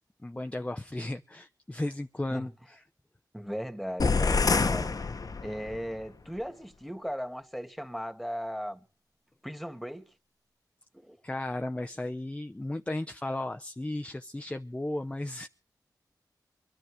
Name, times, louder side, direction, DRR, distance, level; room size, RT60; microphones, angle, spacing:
voice 1, 0.2-2.8 11.2-15.5, left 1 dB, 15° left, 0.8 m, -35 dB
voice 2, 3.3-5.0 5.4-8.8 9.4-10.0 10.9-11.2, equal, ahead, 2.3 m, -37 dB
sound 1, 4.0-5.8, left 4 dB, 55° left, 1.1 m, -26 dB
23.5 x 11.0 x 5.0 m
cardioid pair, 60°, 7 cm